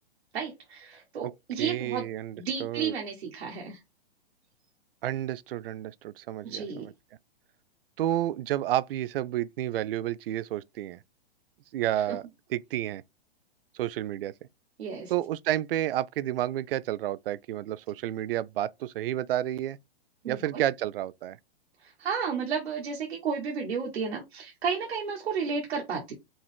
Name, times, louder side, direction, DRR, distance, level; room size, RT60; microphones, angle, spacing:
voice 1, 0.3-2.1 2.3-3.8 6.4-6.9 12.1-12.2 14.8-15.1 20.2-20.6 21.8-26.1, right 6 dB, 75° right, 1.6 m, -32 dB
voice 2, 1.6-2.9 5.0-6.6 8.0-11.0 11.7-12.2 12.5-13.0 13.7-14.3 15.1-19.8 20.3-21.4, right 13 dB, 60° right, 0.4 m, -30 dB
5.1 x 2.4 x 3.5 m
hypercardioid pair, 145°, 31 cm